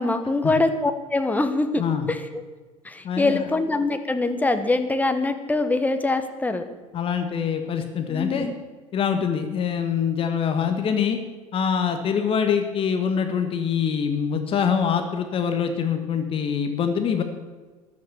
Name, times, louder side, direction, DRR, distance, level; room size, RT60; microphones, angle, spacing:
voice 1, 0.0-2.2 2.8-6.7 8.1-8.5, left 2 dB, 10° left, 8 dB, 1.5 m, -24 dB
voice 2, 3.0-3.5 6.9-8.5 8.9-11.2 11.5-17.2, left 7 dB, 30° left, 7 dB, 1.7 m, -24 dB
14.0 x 11.5 x 7.0 m, 1.3 s
figure-of-eight pair, 70°, 17 cm